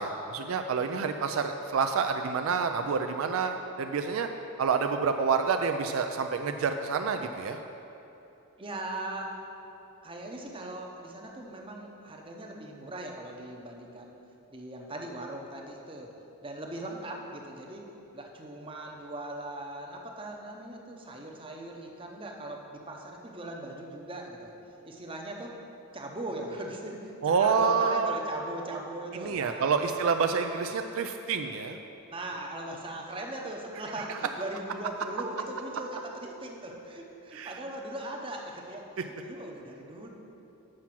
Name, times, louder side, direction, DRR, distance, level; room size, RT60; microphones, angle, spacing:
voice 1, 0.0-4.3 4.6-7.6 27.2-28.1 29.2-31.8 37.3-37.6, right 5 dB, 70° right, 6 dB, 0.4 m, -28 dB
voice 2, 8.6-9.4 10.0-14.2 14.5-16.1 16.4-17.8 18.1-24.5 24.8-25.6 25.9-29.9 32.1-40.1, right 1 dB, 25° right, 1 dB, 0.7 m, -39 dB
7.6 x 5.8 x 5.9 m, 3.0 s
head